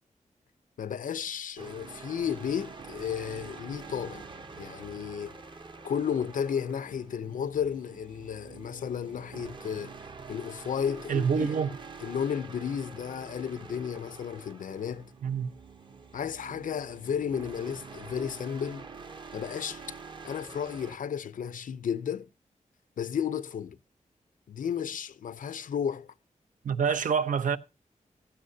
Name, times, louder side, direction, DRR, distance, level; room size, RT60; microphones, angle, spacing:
voice 1, 0.8-4.2 4.6-5.4 5.8-9.9 10.3-11.5 12.0-15.1 16.1-18.9 19.3-19.8 20.2-22.3 23.0-23.8 24.5-26.1, left 8 dB, 90° left, 0.7 m, -33 dB
sound 1, 1.6-21.0, right 4 dB, 35° right, 0.8 m, -46 dB
voice 2, 11.1-11.8 15.2-15.5 26.6-27.6, right 6 dB, 75° right, 0.8 m, -26 dB
16.0 x 14.0 x 2.7 m
wide cardioid pair, 165°, 14 cm